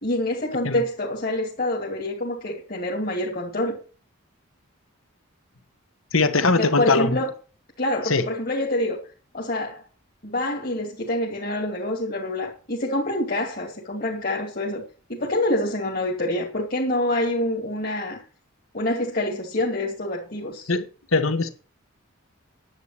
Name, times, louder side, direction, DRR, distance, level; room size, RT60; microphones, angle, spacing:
voice 1, 0.0-3.8 6.5-7.3 7.8-9.0 9.3-9.8 10.2-14.8 15.1-18.2 18.7-20.7, left 1 dB, 45° left, 2.5 m, -26 dB
voice 2, 6.1-7.2 8.1-8.2 20.7-20.8 21.1-21.5, left 3 dB, 75° left, 1.4 m, -21 dB
10.5 x 8.1 x 6.0 m
head